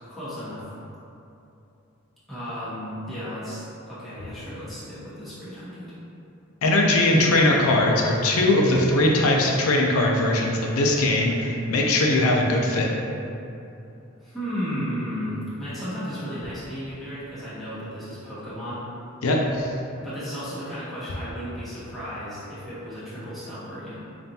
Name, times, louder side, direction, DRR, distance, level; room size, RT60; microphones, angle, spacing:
voice 1, 0.1-0.7 2.3-5.9 14.2-18.9 20.0-24.0, equal, ahead, -13 dB, 1.0 m, -34 dB
voice 2, 6.6-12.9 19.2-19.7, left 1 dB, 90° left, 0 dB, 0.5 m, -20 dB
5.2 x 2.5 x 2.8 m, 2.8 s
head